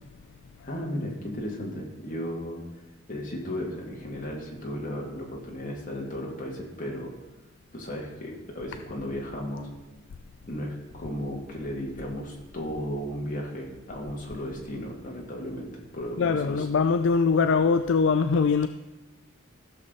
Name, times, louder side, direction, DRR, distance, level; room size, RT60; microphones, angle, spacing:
voice 1, 0.6-2.6 3.1-7.1 7.7-9.7 10.5-16.7, equal, 45° left, 2.4 m, -35 dB
voice 2, 16.2-18.7, left 5 dB, 70° left, 0.4 m, -22 dB
15.0 x 6.7 x 4.1 m
head